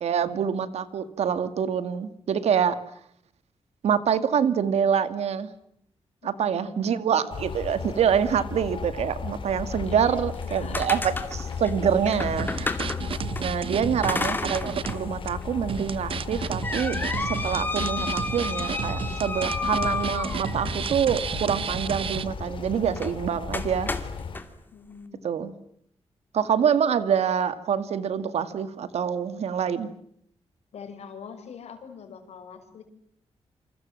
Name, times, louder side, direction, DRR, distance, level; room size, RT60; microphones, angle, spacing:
voice 1, 0.0-2.8 3.8-5.5 6.2-12.8 13.4-23.9 25.2-25.5 26.3-29.9, right 8 dB, 90° right, 12 dB, 2.1 m, -26 dB
voice 2, 6.2-6.9 9.8-10.9 13.8-14.3 24.7-25.3 30.7-32.8, left 6 dB, 85° left, 6 dB, 5.2 m, -44 dB
sound 1, 7.3-24.4, left 6 dB, 55° left, 2.5 m, -35 dB
sound 2, 10.3-13.4 14.0-15.0 15.4-15.5 16.1-20.8 22.9-23.1 23.5-24.4, left 3 dB, 20° left, 2.6 m, -31 dB
sound 3, 12.3-15.0 15.3-15.4 15.7-22.3, right 7 dB, 55° right, 1.1 m, -33 dB
28.5 x 27.0 x 7.6 m, 0.70 s
wide cardioid pair, 155°, 11 cm